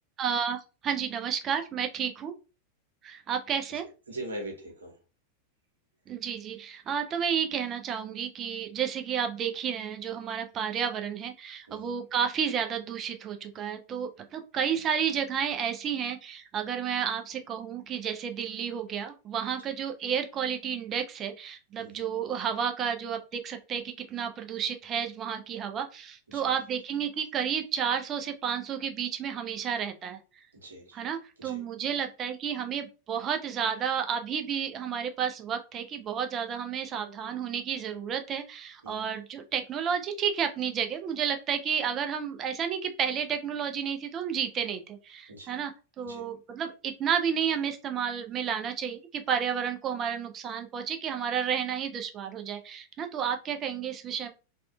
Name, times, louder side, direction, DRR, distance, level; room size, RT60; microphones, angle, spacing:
voice 1, 0.2-2.3 3.0-3.8 6.1-30.2 30.9-45.7 46.0-54.3, right 7 dB, 30° right, 6 dB, 0.4 m, -31 dB
voice 2, 4.1-5.0 11.7-11.9 21.8-22.0 26.3-26.4 30.6-31.0 31.4-31.6 38.8-39.1 45.3-45.6 46.0-46.3, right 1 dB, 70° right, 1 dB, 0.9 m, -41 dB
3.5 x 2.3 x 2.2 m, 0.33 s
figure-of-eight pair, 90°, 0 cm